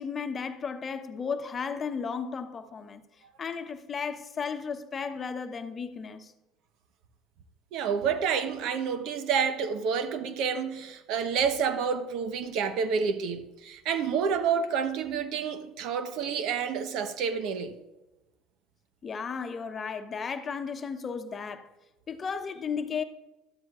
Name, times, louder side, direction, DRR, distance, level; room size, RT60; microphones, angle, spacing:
voice 1, 0.0-3.0 3.4-6.3 19.0-21.7 22.1-23.0, left 6 dB, 35° left, 0.9 m, -34 dB
voice 2, 7.7-17.7, right 6 dB, 65° right, 1.0 m, -29 dB
13.0 x 12.5 x 2.4 m
hypercardioid pair, 80°, 0 cm